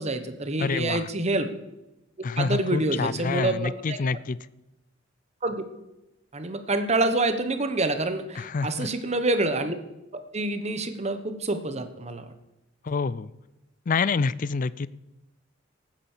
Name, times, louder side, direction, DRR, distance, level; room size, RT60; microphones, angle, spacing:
voice 1, 0.0-1.5 2.2-4.0 5.4-5.6 6.3-9.8 10.3-12.2, right 2 dB, 35° right, 9 dB, 1.1 m, -27 dB
voice 2, 0.6-1.1 2.2-4.4 8.4-8.9 12.8-13.3 13.9-14.9, left 4 dB, 40° left, 18 dB, 0.4 m, -27 dB
14.5 x 9.2 x 7.3 m, 0.98 s
head